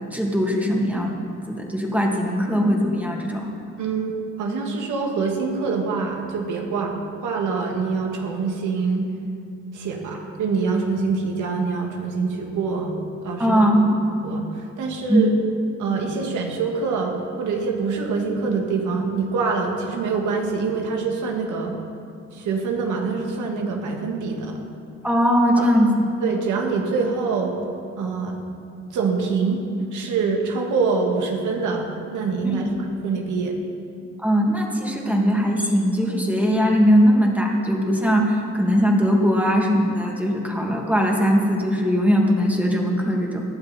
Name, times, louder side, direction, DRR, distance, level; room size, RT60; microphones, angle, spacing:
voice 1, 0.1-1.1 1.5-3.4 13.4-13.9 15.1-15.2 25.0-26.1 32.4-32.7 34.2-43.4, equal, 5° right, -1 dB, 2.6 m, -20 dB
voice 2, 3.8-9.1 9.7-12.9 13.2-13.6 14.2-15.3 15.8-21.7 22.3-24.5 25.6-25.7 26.2-27.6 28.0-28.4 28.9-29.6 29.9-32.7 33.0-33.6, right 4 dB, 80° right, 1 dB, 2.4 m, -25 dB
18.5 x 11.5 x 4.5 m, 2.5 s
cardioid pair, 90°, 30 cm